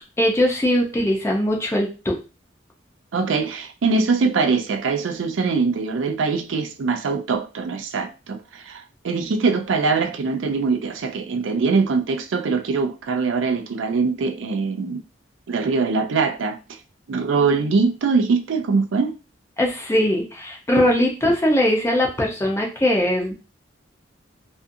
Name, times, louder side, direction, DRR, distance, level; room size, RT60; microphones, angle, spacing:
voice 1, 0.2-2.2 19.6-23.3, left 1 dB, 15° left, 0.6 m, -20 dB
voice 2, 3.1-15.0 15.5-16.6 17.1-19.1, right 4 dB, 85° right, 0.4 m, -22 dB
2.5 x 2.4 x 2.6 m
head